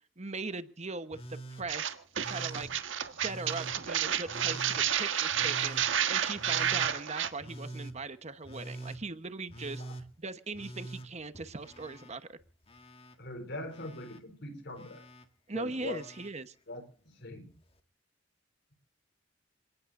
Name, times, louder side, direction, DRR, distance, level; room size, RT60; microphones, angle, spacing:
voice 1, 0.2-1.9 2.2-2.7 3.2-9.8 10.2-12.4 15.5-16.5, right 3 dB, 35° right, 11 dB, 1.1 m, -40 dB
Telephone, 1.1-1.7 2.2-2.7 3.2-3.8 4.3-4.8 5.3-5.9 6.4-6.9 7.4-8.0 8.4-9.0 9.5-10.1 10.5-12.1 12.4-13.2 13.7-14.2 14.8-15.3 15.8-16.3 17.5-17.6, right 2 dB, 30° left, 1.9 m, -45 dB
sound 1, 1.7-7.3, right 9 dB, 75° right, 1.5 m, -30 dB
voice 2, 13.2-15.0 15.5-16.0 16.7-17.5, left 1 dB, 65° left, 8 dB, 4.4 m, -42 dB
28.0 x 18.0 x 2.6 m, 0.42 s
head